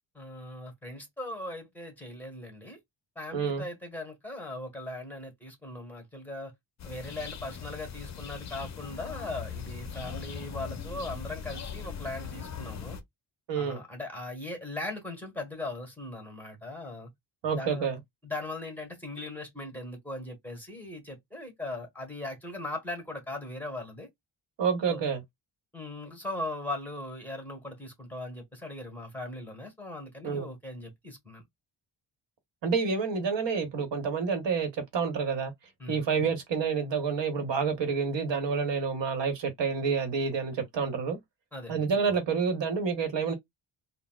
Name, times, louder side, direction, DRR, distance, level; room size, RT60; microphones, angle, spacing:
voice 1, 0.1-2.8 3.1-6.5 6.8-13.0 13.5-17.1 17.5-17.9 18.2-24.1 24.9-25.1 25.7-31.4 35.8-36.1 41.5-41.9, left 2 dB, 5° left, 1.3 m, -39 dB
voice 2, 3.3-3.6 13.5-13.8 17.4-18.0 24.6-25.2 30.2-30.5 32.6-35.5 35.9-41.2 41.7-43.3, right 5 dB, 65° right, 1.0 m, -28 dB
sound 1, 6.8-13.0, left 7 dB, 35° left, 0.6 m, -40 dB
3.9 x 2.0 x 2.3 m
cardioid pair, 105°, 46 cm